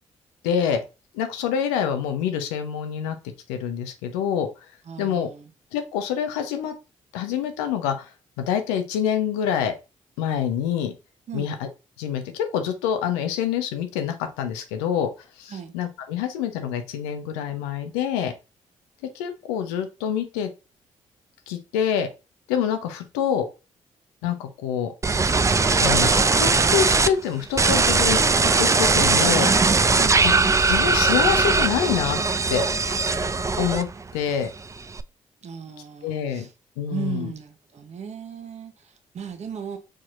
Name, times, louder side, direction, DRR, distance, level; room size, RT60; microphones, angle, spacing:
voice 1, 0.4-0.8 1.1-3.2 3.5-4.5 5.0-5.3 5.7-6.7 7.1-8.1 8.4-9.7 10.2-10.9 11.3-11.5 12.0-15.1 15.4-18.3 19.1-20.5 21.5-22.1 22.5-23.5 24.2-24.9 25.8-28.2 28.6-29.5 30.7-32.2 32.5-32.7 33.6-33.9 34.1-34.5 36.0-36.5 36.8-37.3, left 8 dB, 85° left, 0.6 m, -26 dB
voice 2, 4.9-5.5 11.3-11.6 15.5-15.7 30.0-30.2 35.4-36.5 36.9-39.8, right 7 dB, 50° right, 0.9 m, -36 dB
sound 1, 25.0-27.1 27.6-34.1 34.4-35.0, right 4 dB, 20° right, 0.4 m, -20 dB
5.0 x 4.2 x 2.5 m
hypercardioid pair, 45°, 14 cm